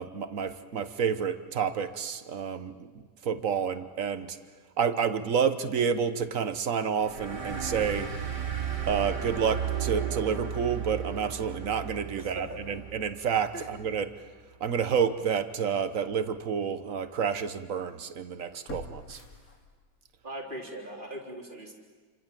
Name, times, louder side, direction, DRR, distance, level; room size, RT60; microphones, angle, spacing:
voice 1, 0.0-2.7 3.2-4.4 4.8-8.1 8.9-14.1 14.6-19.2, right 7 dB, 55° right, 11 dB, 1.3 m, -29 dB
sound 1, 7.0-14.1, right 7 dB, 75° right, 3.2 m, -35 dB
voice 2, 12.2-12.8 13.5-13.8 20.2-21.7, right 1 dB, 30° right, -1 dB, 4.0 m, -40 dB
sound 2, 18.7-20.1 20.5-20.6, left 2 dB, 55° left, 3.0 m, -45 dB
28.5 x 26.0 x 7.5 m, 1.5 s
omnidirectional pair, 1.9 m